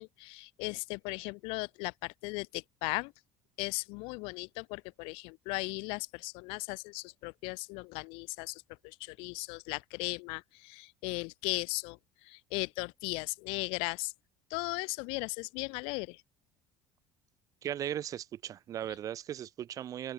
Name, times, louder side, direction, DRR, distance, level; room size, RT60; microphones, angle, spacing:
voice 1, 0.0-3.1 3.6-12.0 12.3-14.1 14.5-16.2, left 31 dB, 90° left, 2.1 m, -37 dB
voice 2, 17.6-20.1, right 10 dB, 40° right, 2.1 m, -37 dB
open air
cardioid pair, 160°, 9 cm